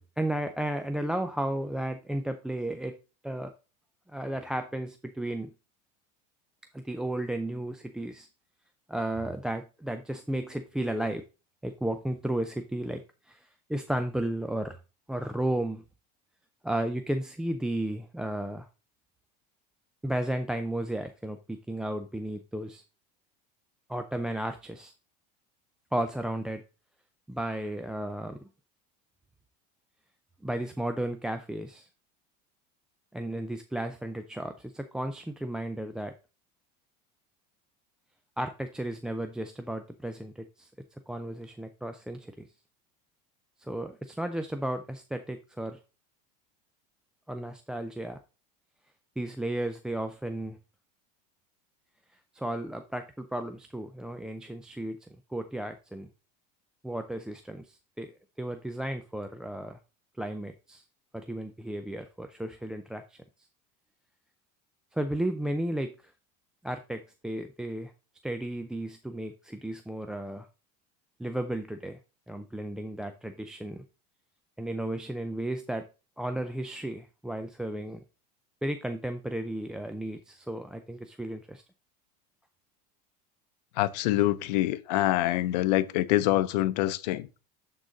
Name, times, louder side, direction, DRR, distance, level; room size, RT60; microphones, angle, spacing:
voice 1, 0.0-3.0 3.2-3.5 4.1-5.5 6.7-8.3 8.9-11.2 11.6-14.8 15.1-15.8 16.6-18.7 20.0-22.8 23.9-24.9 25.9-26.6 27.3-28.5 30.4-31.9 33.1-36.1 38.4-40.7 41.1-42.5 43.6-45.8 47.3-48.2 49.2-50.6 52.3-56.1 56.8-58.1 58.4-59.8 60.2-60.8 61.1-63.2 64.9-66.1 66.6-67.9 68.2-70.5 71.2-72.0 72.3-73.8 74.6-75.9 76.2-78.0 78.6-81.6, right 1 dB, 5° right, 0.4 m, -34 dB
voice 2, 83.8-87.3, left 15 dB, 85° left, 0.6 m, -25 dB
11.5 x 3.9 x 3.8 m
supercardioid pair, 135°, 21 cm